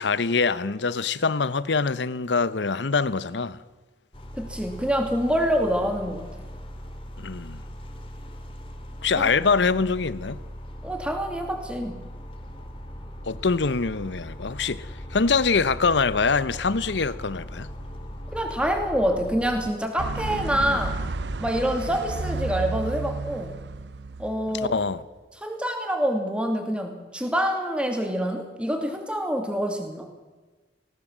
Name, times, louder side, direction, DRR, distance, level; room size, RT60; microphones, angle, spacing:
voice 1, 0.0-3.6 7.2-7.6 9.0-10.4 13.2-17.7 20.5-20.8 24.5-25.0, left 4 dB, 90° left, 0.9 m, -24 dB
sound 1, 4.1-19.7, equal, 30° left, 2.4 m, -39 dB
voice 2, 4.4-6.3 9.2-9.3 10.8-12.0 18.3-21.0 21.4-23.6 24.2-24.7 25.4-30.1, equal, 5° right, 2.6 m, -26 dB
sound 2, 20.0-25.0, right 3 dB, 80° right, 0.7 m, -32 dB
19.5 x 18.5 x 7.5 m
head